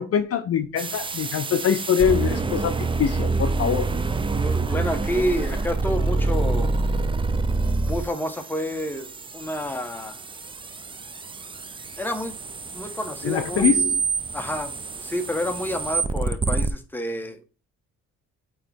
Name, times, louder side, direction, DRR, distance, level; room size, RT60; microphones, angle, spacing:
voice 1, 0.0-3.9 13.2-14.0, left 8 dB, 50° left, 0.6 m, -23 dB
sound 1, 0.8-16.7, right 3 dB, 15° right, 0.4 m, -27 dB
voice 2, 4.4-6.7 7.8-10.2 12.0-12.4 12.7-13.7 14.3-17.5, equal, 5° left, 1.0 m, -29 dB
8.8 x 3.0 x 3.5 m
cardioid pair, 90°, 30 cm